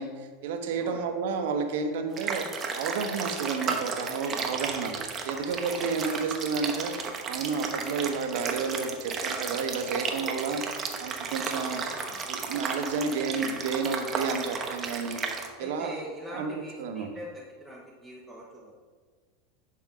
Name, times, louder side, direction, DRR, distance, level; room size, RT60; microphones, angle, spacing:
voice 1, 0.0-2.5 2.7-10.6 11.0-11.9 12.3-15.2 15.6-15.9 16.3-16.5 16.8-17.1, right 5 dB, 75° right, 5 dB, 1.0 m, -31 dB
sound 1, 2.2-15.5, right 5 dB, 30° right, 1.0 m, -34 dB
voice 2, 11.8-12.3 15.6-18.7, equal, 5° left, -5 dB, 1.2 m, -42 dB
11.0 x 4.4 x 3.8 m, 1.5 s
supercardioid pair, 120°, 0 cm